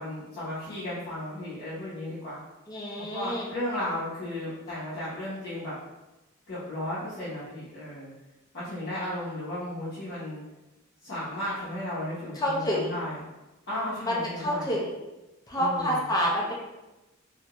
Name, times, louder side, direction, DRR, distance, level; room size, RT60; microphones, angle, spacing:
voice 1, 0.0-2.4 3.1-5.7 6.5-8.1 8.5-10.4 11.0-13.1 13.7-14.7 15.5-16.0, left 1 dB, 50° left, -12 dB, 0.8 m, -34 dB
voice 2, 2.7-3.5 12.3-12.9 14.0-14.9 15.5-16.5, equal, 20° left, -4 dB, 0.4 m, -28 dB
2.4 x 2.1 x 2.8 m, 1.0 s
head